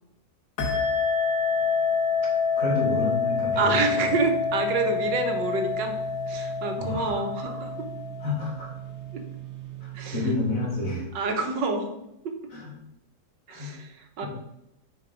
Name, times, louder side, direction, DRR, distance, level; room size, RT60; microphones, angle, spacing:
sound 1, 0.6-8.7, left 5 dB, 75° left, 1.8 m, -27 dB
voice 1, 2.6-3.8 6.8-7.2 8.2-8.7 9.8-11.1 12.5-12.7 13.5-13.7, left 3 dB, 45° left, -3 dB, 2.4 m, -29 dB
sound 2, 2.7-10.9, right 15 dB, 45° right, 1.3 m, -40 dB
voice 2, 3.6-6.0 6.3-7.9 9.1-9.2 9.9-10.3 11.1-11.9 12.2-12.3 13.5-14.3, right 4 dB, 75° right, 5 dB, 1.5 m, -28 dB
6.7 x 4.9 x 4.8 m, 0.85 s
omnidirectional pair, 2.0 m